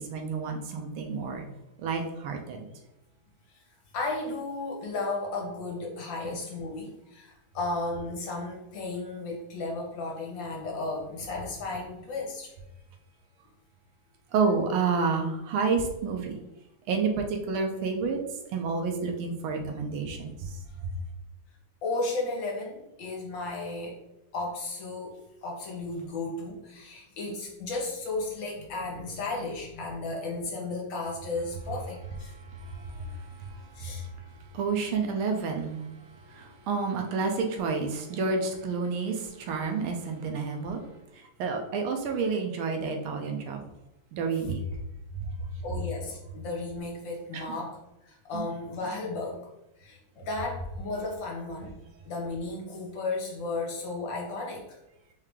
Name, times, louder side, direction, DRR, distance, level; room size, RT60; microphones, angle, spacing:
voice 1, 0.0-1.4 1.8-2.6 6.2-6.3 14.3-16.4 16.9-18.2 18.5-20.3 32.7-33.1 34.5-35.8 36.3-40.8 41.4-43.6 44.1-44.6 47.3-47.4 48.3-48.4, right 4 dB, 80° right, 3 dB, 1.5 m, -29 dB
voice 2, 3.9-12.5 21.8-24.0 24.3-32.3 33.8-34.0 44.3-44.4 45.6-47.8 48.1-49.4 49.8-51.7 52.0-54.7, left 3 dB, 65° left, -1 dB, 1.8 m, -34 dB
4.8 x 2.8 x 3.5 m, 0.90 s
omnidirectional pair, 2.3 m